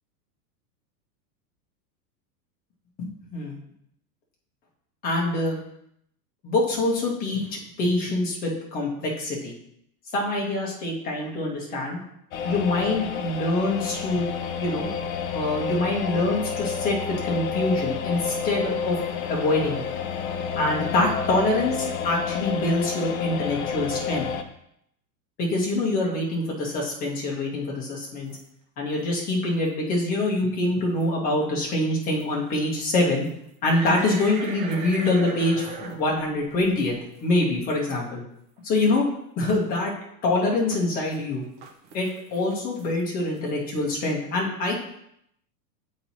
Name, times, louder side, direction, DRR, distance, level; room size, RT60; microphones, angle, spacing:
voice 1, 3.0-3.5 5.0-5.6 6.4-9.5 10.1-12.0 12.4-14.3 14.6-14.9 15.3-17.0 17.2-19.0 19.3-19.8 20.5-24.3 25.4-28.3 28.8-33.3 33.6-36.9 37.2-38.2 38.6-39.0 39.4-39.9 40.2-41.4 41.9-44.7, left 2 dB, 15° left, -2 dB, 1.0 m, -25 dB
sound 1, 12.3-24.4, left 6 dB, 55° left, 0.7 m, -30 dB
sound 2, 28.0-28.4 28.8-29.0 29.6-29.8 30.2-30.3 30.8-31.1 32.1-32.2 32.8-32.9 33.2-37.5 37.7-37.8 38.6-38.7 40.7-41.2 41.4-43.5, right 4 dB, 30° right, 0.5 m, -40 dB
7.4 x 3.1 x 4.1 m, 0.74 s
supercardioid pair, 170°, 50 cm